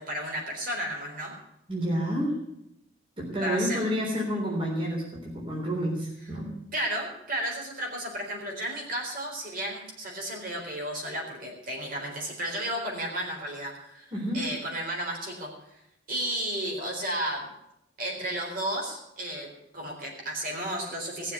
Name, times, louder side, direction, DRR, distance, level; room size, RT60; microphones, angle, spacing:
voice 1, 0.0-1.3 3.4-3.8 6.7-15.5 16.1-17.5 18.0-19.5 19.7-21.3, right 1 dB, 45° right, -1 dB, 4.1 m, -33 dB
voice 2, 1.7-2.4 3.2-6.6 14.1-14.5, equal, 25° right, -3 dB, 3.6 m, -29 dB
18.0 x 7.3 x 8.2 m, 0.82 s
head